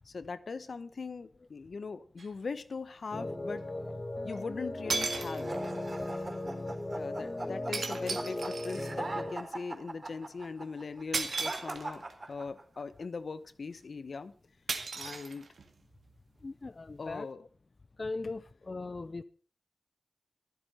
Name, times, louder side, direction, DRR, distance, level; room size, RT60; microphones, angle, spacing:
voice 1, 0.0-3.6 4.2-5.6 6.9-14.3 14.9-15.5 17.0-17.5, left 4 dB, 70° left, 1.1 m, -40 dB
sound 1, 2.2-2.3 4.3-4.4 4.9-5.8 7.7-9.0 11.1-12.1 14.7-15.8, right 4 dB, 85° right, 2.2 m, -36 dB
sound 2, 3.1-9.3, left 1 dB, 30° left, 1.5 m, -37 dB
sound 3, 5.4-12.8, right 2 dB, 50° right, 4.2 m, -41 dB
voice 2, 16.4-17.3 18.0-19.2, left 3 dB, 45° left, 0.6 m, -39 dB
13.5 x 12.0 x 5.6 m
wide cardioid pair, 95°, 0 cm